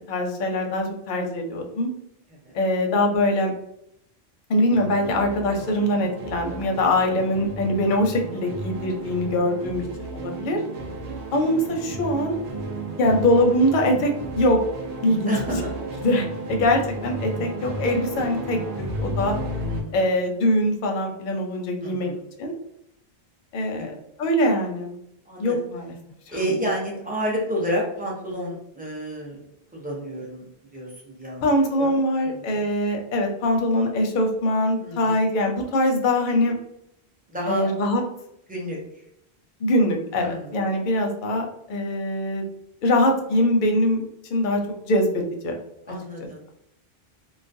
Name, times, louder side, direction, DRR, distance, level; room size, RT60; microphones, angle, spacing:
voice 1, 0.1-1.9 2.5-3.5 4.5-9.8 10.1-10.6 11.3-12.4 13.0-14.6 15.0-15.3 16.0-18.6 19.0-19.3 19.9-22.1 22.4-22.5 23.5-23.9 24.2-24.9 25.4-25.9 26.3-26.4 31.4-36.5 37.5-38.0 39.6-42.4 42.8-44.0 44.3-45.5 46.2-46.3, left 1 dB, 60° left, 2 dB, 0.6 m, -22 dB
sound 1, 4.7-19.8, right 1 dB, 80° right, 0.9 m, -33 dB
voice 2, 15.3-15.7 16.5-16.6 19.7-20.0 21.8-22.2 23.8-24.0 25.3-25.5 26.3-29.4 29.7-32.7 34.8-35.2 37.3-37.7 38.5-38.8 40.1-40.6 45.9-46.4, equal, 10° right, -3 dB, 0.4 m, -30 dB
2.3 x 2.1 x 2.5 m, 0.77 s
omnidirectional pair, 1.1 m